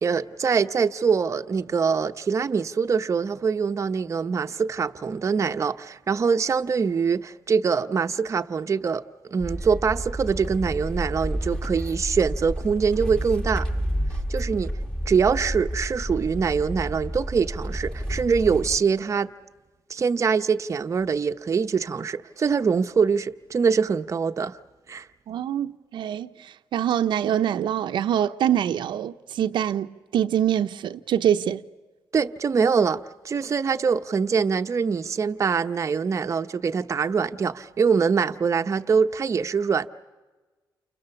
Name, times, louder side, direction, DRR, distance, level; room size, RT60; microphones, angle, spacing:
voice 1, 0.0-9.0 9.3-13.7 14.3-14.7 15.1-19.3 19.9-24.6 24.9-25.1 32.1-39.9, right 5 dB, 40° right, 0.8 m, -24 dB
sound 1, 9.4-18.8, equal, 10° left, 2.0 m, -30 dB
voice 2, 25.3-29.9 30.1-31.6, right 10 dB, 75° right, 0.8 m, -24 dB
29.5 x 28.5 x 7.1 m
cardioid pair, 110°, 8 cm